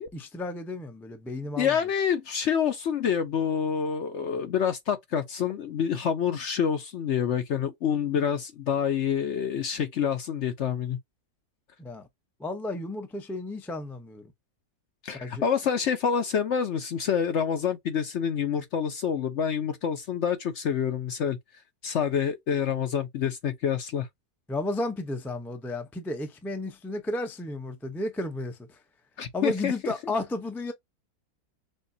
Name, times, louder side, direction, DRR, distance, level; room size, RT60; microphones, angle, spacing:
voice 1, 0.1-1.8 11.8-12.1 12.4-14.3 15.1-15.4 24.5-28.8 29.3-30.7, left 1 dB, 5° left, 0.4 m, -33 dB
voice 2, 1.6-11.0 15.0-21.4 21.8-24.1 29.2-29.9, left 7 dB, 60° left, 0.8 m, -27 dB
6.3 x 2.3 x 2.7 m
omnidirectional pair, 1.7 m